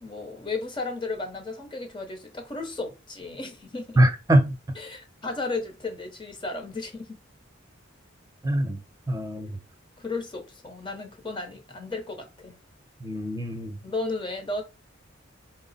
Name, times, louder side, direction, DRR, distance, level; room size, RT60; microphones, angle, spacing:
voice 1, 0.0-4.0 4.7-7.2 10.0-12.6 13.8-14.6, left 3 dB, 25° left, 0.8 m, -34 dB
voice 2, 4.0-4.5 8.4-8.8 9.1-9.6 13.0-13.8, right 1 dB, 20° right, 0.6 m, -23 dB
4.5 x 2.0 x 4.0 m
head